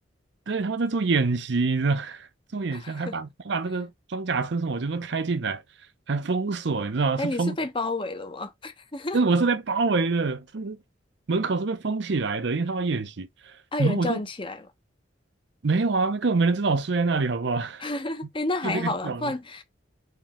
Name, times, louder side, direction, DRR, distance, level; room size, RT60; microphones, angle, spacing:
voice 1, 0.5-5.6 6.1-7.6 9.1-10.8 11.3-14.2 15.6-17.9 18.6-19.3, right 4 dB, 65° right, 0.6 m, -26 dB
voice 2, 2.7-3.2 7.2-9.2 13.7-14.7 17.8-19.6, left 2 dB, 30° left, 0.8 m, -30 dB
4.4 x 2.8 x 3.6 m
head